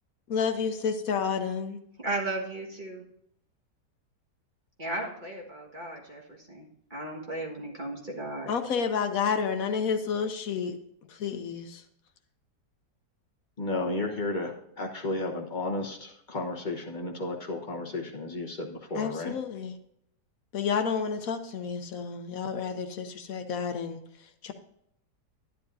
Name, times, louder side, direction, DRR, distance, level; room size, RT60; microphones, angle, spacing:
voice 1, 0.3-1.8 8.5-10.8 11.1-11.8 18.9-19.8 20.5-24.5, left 6 dB, 60° left, 8 dB, 1.1 m, -30 dB
voice 2, 2.0-3.0 4.8-8.5, right 2 dB, 30° right, -2 dB, 1.6 m, -35 dB
voice 3, 13.6-19.3, left 2 dB, 30° left, 1 dB, 1.0 m, -33 dB
11.5 x 10.5 x 2.6 m, 0.76 s
omnidirectional pair, 1.9 m